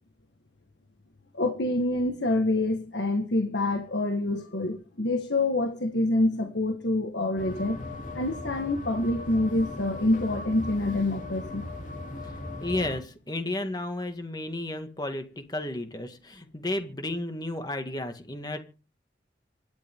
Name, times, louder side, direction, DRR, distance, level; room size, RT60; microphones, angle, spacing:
voice 1, 1.3-7.8 8.1-11.6, left 2 dB, 85° left, 1.7 m, -26 dB
sound 1, 7.4-13.0, left 2 dB, 45° left, 3.2 m, -38 dB
voice 2, 12.6-18.6, left 1 dB, 25° left, 2.0 m, -33 dB
26.0 x 11.0 x 3.7 m
head